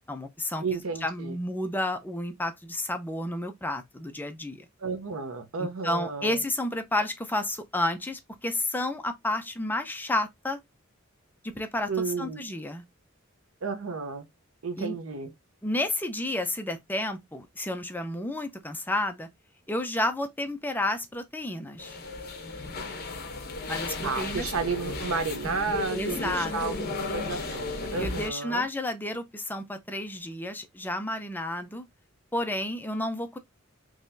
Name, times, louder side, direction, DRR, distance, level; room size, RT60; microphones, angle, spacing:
voice 1, 0.1-4.7 5.6-10.6 11.4-11.9 12.2-12.8 14.8-15.0 15.6-19.3 19.7-22.0 23.7-24.5 25.9-26.8 28.0-31.8 32.3-33.4, left 1 dB, 10° left, 0.5 m, -31 dB
voice 2, 0.6-1.4 4.8-6.4 11.9-12.4 13.6-14.3 14.6-15.3 24.0-28.6, right 4 dB, 85° right, 0.8 m, -32 dB
sound 1, 21.8-28.3, left 3 dB, 50° left, 0.8 m, -35 dB
3.9 x 3.0 x 2.6 m
head